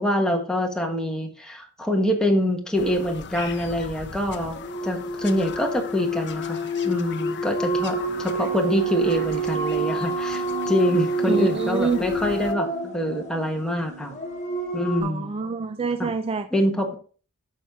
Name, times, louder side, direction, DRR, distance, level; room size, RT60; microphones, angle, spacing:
voice 1, 0.0-14.2 14.7-15.3 16.0-16.1 16.5-16.9, left 1 dB, 5° left, 2 dB, 1.3 m, -25 dB
Bird vocalization bird call bird song, 2.7-12.5, left 6 dB, 55° left, 0.6 m, -40 dB
sound 1, 4.4-15.0, right 2 dB, 35° left, 1.4 m, -28 dB
sound 2, 7.7-15.3, right 4 dB, 85° right, 2.0 m, -40 dB
voice 2, 11.3-12.0 15.0-16.5, right 4 dB, 25° right, 8 dB, 0.4 m, -26 dB
8.4 x 5.7 x 3.6 m, 0.40 s
head